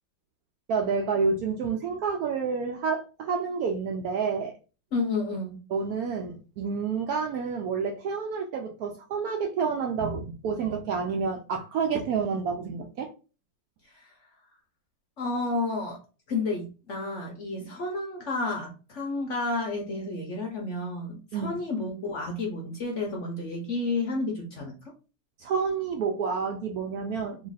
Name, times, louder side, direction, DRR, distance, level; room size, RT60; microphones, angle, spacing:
voice 1, 0.7-4.6 5.7-13.1 21.3-21.6 25.4-27.5, right 5 dB, 70° right, 0.9 m, -29 dB
voice 2, 4.9-5.6 14.0-14.1 15.2-16.0 16.3-24.7, left 3 dB, 55° left, 0.9 m, -31 dB
3.1 x 2.5 x 4.0 m
omnidirectional pair, 2.0 m